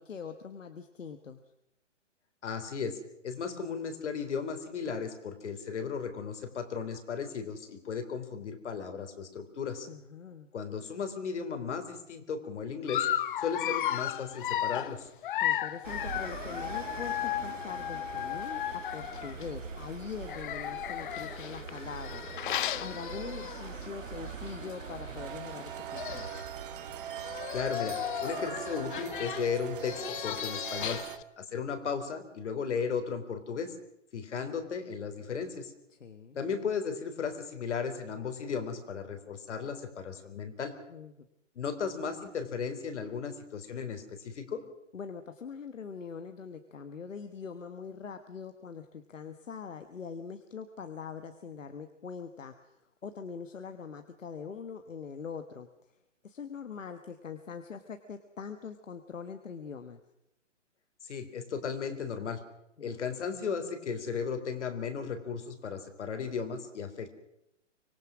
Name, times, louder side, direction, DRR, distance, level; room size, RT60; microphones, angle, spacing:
voice 1, 0.0-1.4 9.9-10.5 15.4-18.6 18.9-22.2 22.8-26.3 35.9-36.4 40.9-41.3 44.9-55.7 56.2-60.0 62.8-63.1, left 6 dB, 85° left, 8 dB, 1.6 m, -43 dB
voice 2, 2.4-3.0 3.2-9.9 10.5-13.1 13.4-15.1 27.5-31.0 31.4-33.7 34.1-35.7 36.4-40.7 41.6-44.6 61.0-62.4 62.8-67.1, left 6 dB, 65° left, 8 dB, 3.7 m, -35 dB
Dog, 12.9-19.5 20.2-23.8 24.3-24.4 24.7-24.8 25.7-25.8 25.9-26.5 27.1-31.2, left 11 dB, 40° left, 0.7 m, -35 dB
sound 1, 15.8-30.5, right 5 dB, 85° right, 3.6 m, -44 dB
sound 2, 25.2-31.2, right 11 dB, 45° right, 1.7 m, -41 dB
25.0 x 18.5 x 6.2 m, 0.84 s
hypercardioid pair, 140°, 37 cm